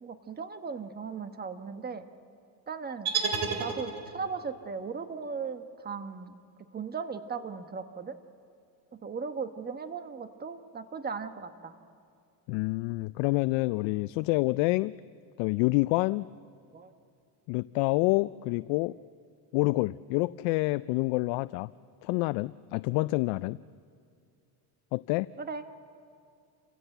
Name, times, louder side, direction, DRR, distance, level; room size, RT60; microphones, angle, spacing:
voice 1, 0.0-2.0 2.7-3.1 3.6-6.3 6.7-8.2 8.9-11.7 16.7-16.9 25.4-25.6, right 5 dB, 20° right, 8 dB, 1.3 m, -37 dB
sound 1, 3.1-4.4, right 5 dB, 55° right, 4.0 m, -31 dB
voice 2, 12.5-14.9 15.4-16.3 17.5-19.0 19.5-21.7 22.0-23.6 24.9-25.3, left 22 dB, 80° left, 15 dB, 0.5 m, -27 dB
29.0 x 16.0 x 8.0 m, 2.4 s
cardioid pair, 120°, 43 cm